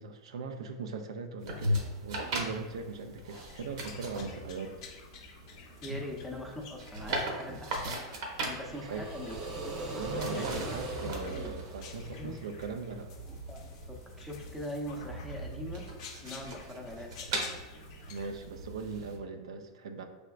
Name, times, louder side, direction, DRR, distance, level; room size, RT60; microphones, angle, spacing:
voice 1, 0.0-4.8 8.7-9.1 9.9-13.1 18.1-20.1, right 4 dB, 85° right, 6 dB, 0.4 m, -40 dB
sound 1, 1.4-19.2, right 1 dB, 65° right, 1.0 m, -39 dB
sound 2, 3.3-18.5, left 6 dB, 60° left, 0.6 m, -53 dB
voice 2, 5.8-7.8 8.5-9.4 10.3-10.6 11.2-11.5 12.2-12.3 13.3-15.8 16.2-17.2, left 1 dB, ahead, -1 dB, 0.6 m, -42 dB
sound 3, 8.5-12.5, right 2 dB, 35° right, 0.7 m, -40 dB
4.8 x 3.4 x 2.3 m, 1.2 s
supercardioid pair, 130°, 3 cm